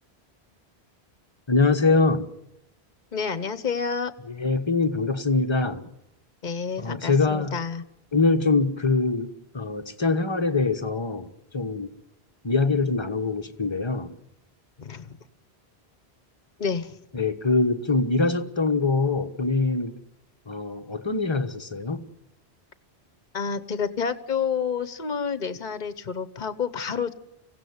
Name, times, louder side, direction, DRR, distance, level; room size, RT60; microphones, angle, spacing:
voice 1, 1.5-2.3 4.3-5.8 6.8-7.6 8.1-11.9 12.4-14.1 17.1-20.0 20.5-22.1, left 3 dB, 25° left, 1.2 m, -24 dB
voice 2, 3.1-4.1 6.4-7.8 14.8-15.1 16.6-16.9 23.3-27.1, left 6 dB, 45° left, 1.2 m, -29 dB
24.5 x 16.0 x 9.5 m
omnidirectional pair, 1.1 m